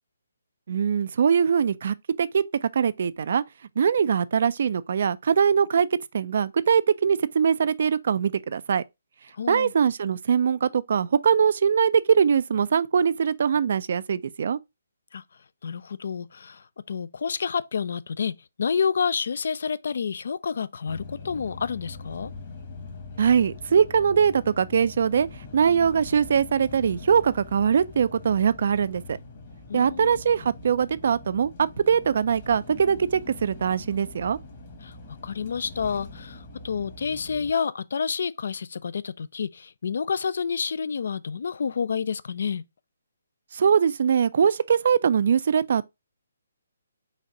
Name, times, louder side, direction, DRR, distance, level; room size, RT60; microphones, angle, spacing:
voice 1, 0.7-3.4 3.8-8.8 9.5-14.6 23.2-25.3 25.5-29.2 29.7-34.4 43.5-45.9, right 7 dB, 55° right, 0.3 m, -22 dB
voice 2, 9.3-9.7 15.1-15.2 15.6-22.3 29.7-30.2 34.8-42.6, left 6 dB, 60° left, 0.3 m, -29 dB
sound 1, 20.9-37.5, left 3 dB, 45° left, 1.3 m, -43 dB
4.0 x 2.5 x 3.9 m
figure-of-eight pair, 145°, 0 cm